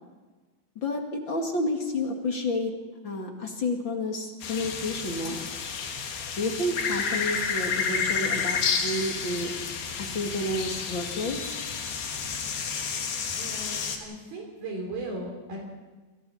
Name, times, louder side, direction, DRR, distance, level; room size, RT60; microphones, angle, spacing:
voice 1, 0.8-2.7 3.0-5.5 6.4-9.5 10.0-11.6, left 1 dB, 35° left, 2 dB, 2.3 m, -30 dB
sound 1, 4.4-14.0, left 6 dB, 75° left, 4.0 m, -30 dB
voice 2, 13.3-15.6, right 2 dB, 65° right, -1 dB, 5.2 m, -37 dB
28.0 x 26.5 x 4.3 m, 1.3 s
omnidirectional pair, 4.6 m